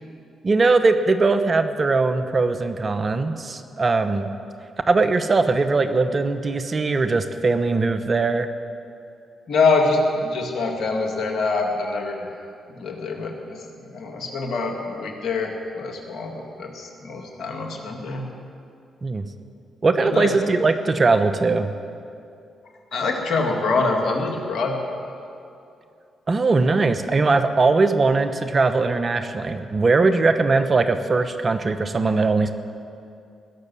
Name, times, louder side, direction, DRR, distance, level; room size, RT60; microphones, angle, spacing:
voice 1, 0.4-4.3 4.9-8.5 19.0-19.2 19.8-21.7 26.3-32.6, right 3 dB, 45° right, 9 dB, 1.0 m, -20 dB
voice 2, 9.5-12.3 12.7-13.6 13.9-18.3 20.0-20.4 22.9-25.3, left 3 dB, 70° left, 2 dB, 2.1 m, -25 dB
19.5 x 6.7 x 9.8 m, 2.5 s
supercardioid pair, 50°, 0 cm